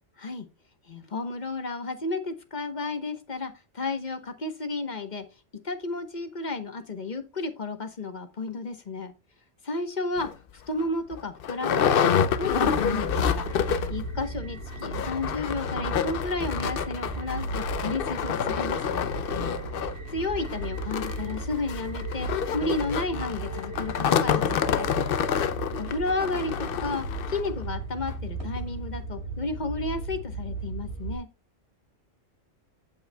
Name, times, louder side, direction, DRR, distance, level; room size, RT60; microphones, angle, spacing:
voice 1, 0.9-5.2 5.6-9.1 9.6-13.5 13.9-19.1 20.1-24.9 25.8-31.3, left 3 dB, 40° left, 9 dB, 1.1 m, -32 dB
sound 1, 10.2-10.3 10.8-10.9 11.1-14.1 14.3-14.4 14.7-27.5 28.1-28.2 28.6-28.7, left 8 dB, 55° left, 0.7 m, -28 dB
sound 2, 12.2-31.2, right 2 dB, 55° right, 6.4 m, -36 dB
15.0 x 5.5 x 2.2 m, 0.27 s
omnidirectional pair, 1.3 m